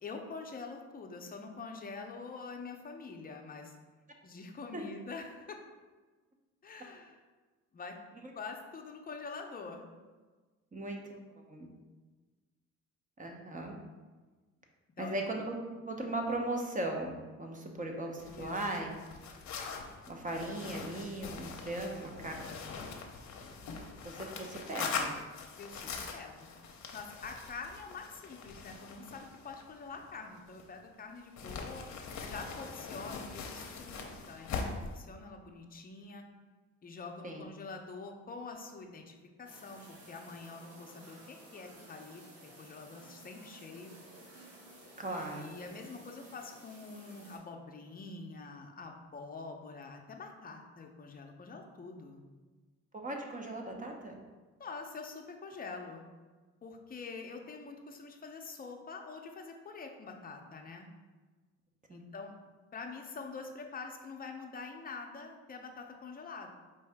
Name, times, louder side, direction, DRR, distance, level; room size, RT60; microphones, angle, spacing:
voice 1, 0.0-3.8 4.2-5.6 6.6-7.2 7.7-8.0 8.3-9.8 15.0-15.3 18.3-18.9 21.8-22.2 25.6-26.5 26.9-31.9 32.2-36.2 36.8-44.0 45.1-52.2 54.6-56.0 56.6-60.9 61.9-62.3 62.7-66.5, left 4 dB, 30° left, 3 dB, 0.6 m, -46 dB
voice 2, 10.7-11.2 11.5-11.7 13.2-13.7 15.0-18.9 20.1-22.3 24.0-25.1 37.2-37.4 45.0-45.5 53.0-54.2 61.9-62.0, right 1 dB, 25° right, 2 dB, 0.7 m, -38 dB
sound 1, 18.2-30.9 31.4-35.0, left 5 dB, 65° left, 0.6 m, -42 dB
sound 2, 39.4-47.4, right 1 dB, 55° right, 1.5 m, -55 dB
4.7 x 2.6 x 3.4 m, 1.3 s
cardioid pair, 90°, 30 cm